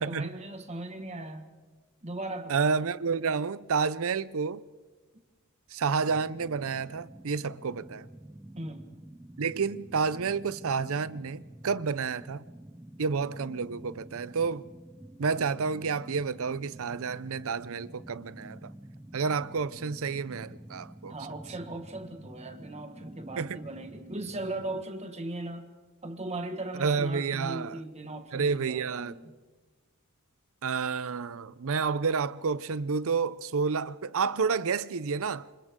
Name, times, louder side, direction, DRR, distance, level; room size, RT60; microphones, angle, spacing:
voice 1, 0.0-1.5 2.0-2.6 8.5-8.9 21.1-25.7 26.0-29.2, right 2 dB, 30° right, 1.7 m, -38 dB
voice 2, 2.5-4.6 5.7-8.1 9.4-12.4 13.0-14.7 15.2-18.7 19.1-21.1 23.4-23.6 26.8-27.8 28.3-29.1 30.6-35.5, right 5 dB, 65° right, 0.6 m, -30 dB
sound 1, 6.0-24.8, right 1 dB, 10° right, 0.6 m, -49 dB
28.5 x 26.0 x 3.7 m
head